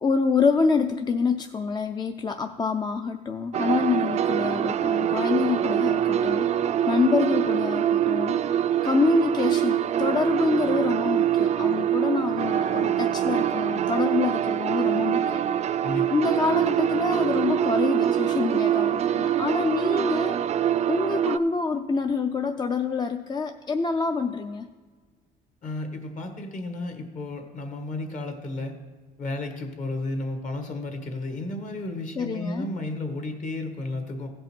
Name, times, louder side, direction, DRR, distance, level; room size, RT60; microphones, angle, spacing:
voice 1, 0.0-15.4 16.1-20.4 20.9-24.7 32.2-32.7, left 4 dB, 25° left, 7 dB, 0.5 m, -26 dB
sound 1, 3.5-21.4, right 10 dB, 40° right, 0.4 m, -24 dB
voice 2, 25.6-28.7 29.2-34.3, left 2 dB, 50° left, 5 dB, 1.6 m, -33 dB
16.0 x 5.4 x 4.4 m, 1.4 s
cardioid pair, 110°, 17 cm